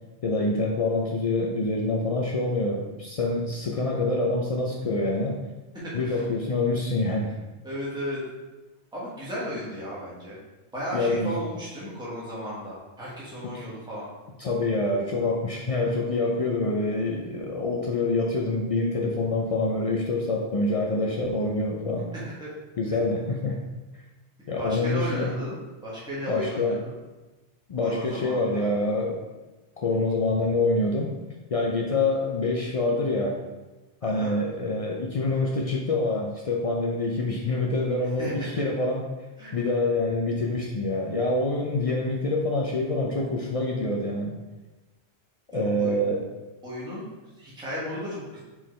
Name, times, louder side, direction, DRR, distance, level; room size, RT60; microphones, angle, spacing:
voice 1, 0.2-5.4 5.9-7.3 10.9-11.4 13.4-13.5 14.4-22.1 22.8-23.6 24.5-25.3 26.3-26.8 27.7-29.2 29.8-31.1 31.5-33.4 34.0-39.0 39.5-44.4 45.5-46.2, left 2 dB, 65° left, -1 dB, 0.3 m, -26 dB
voice 2, 5.8-6.2 7.6-8.2 8.9-10.4 10.7-14.1 22.4-22.5 24.6-25.5 25.8-26.9 27.8-28.7 34.0-34.4 38.2-38.6 39.4-39.5 45.5-46.0 46.6-47.0 47.4-48.4, equal, 5° right, -8 dB, 1.2 m, -34 dB
4.4 x 3.6 x 3.1 m, 1.1 s
omnidirectional pair, 1.1 m